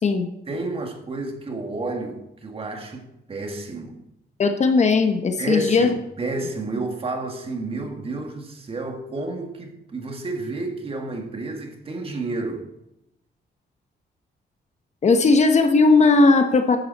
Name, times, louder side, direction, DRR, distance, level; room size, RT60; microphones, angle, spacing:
voice 1, 0.5-4.0 5.4-5.9 6.2-12.7, right 2 dB, 30° right, 2.0 m, -30 dB
voice 2, 4.4-5.9 15.0-16.8, left 3 dB, 40° left, 1.1 m, -17 dB
14.0 x 11.0 x 4.2 m
wide cardioid pair, 160°, 18 cm